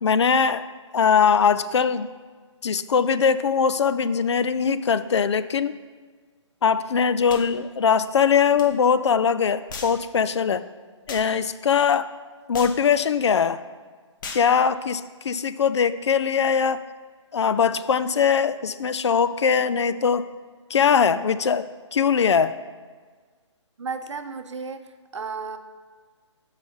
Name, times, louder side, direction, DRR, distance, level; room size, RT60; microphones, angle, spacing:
voice 1, 0.0-0.7 0.9-2.1 2.6-5.7 6.6-10.6 11.1-12.1 12.5-13.6 14.3-16.8 17.3-20.2 20.7-21.7 21.9-22.6, left 6 dB, 65° left, 14 dB, 0.4 m, -21 dB
sound 1, 7.3-7.5 8.6-8.7 9.7-10.0 11.1-11.3 12.5-12.8 14.2-14.5, left 4 dB, 40° left, 0.9 m, -36 dB
voice 2, 23.8-25.6, right 5 dB, 70° right, 8 dB, 0.7 m, -33 dB
7.4 x 4.9 x 5.3 m, 1.5 s
figure-of-eight pair, 140°, 16 cm